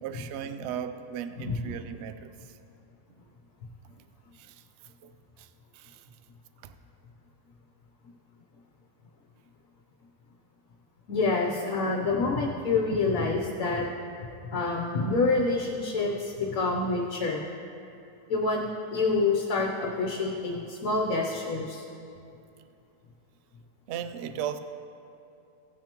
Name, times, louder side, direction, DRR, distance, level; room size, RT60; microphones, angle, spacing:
voice 1, 0.0-2.3 4.3-4.6 5.0-5.5 5.7-6.0 6.6-6.7 23.9-24.6, right 9 dB, 70° right, 11 dB, 0.6 m, -37 dB
voice 2, 11.1-13.9 14.5-17.4 18.3-21.8, left 3 dB, 65° left, -1 dB, 1.3 m, -27 dB
16.5 x 9.1 x 3.0 m, 2.7 s
omnidirectional pair, 1.6 m